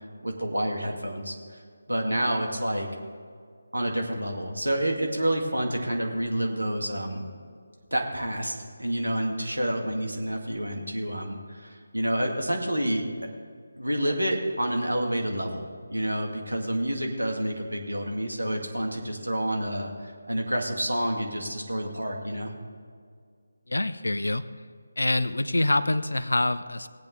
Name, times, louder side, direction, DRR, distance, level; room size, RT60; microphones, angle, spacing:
voice 1, 0.2-1.6 1.9-2.9 3.7-7.2 7.9-13.0 13.8-22.5, right 1 dB, 80° right, 1 dB, 2.2 m, -29 dB
voice 2, 23.7-24.4 25.0-26.9, left 2 dB, 70° left, 13 dB, 0.6 m, -25 dB
19.0 x 8.6 x 3.9 m, 2.1 s
figure-of-eight pair, 155°, 0 cm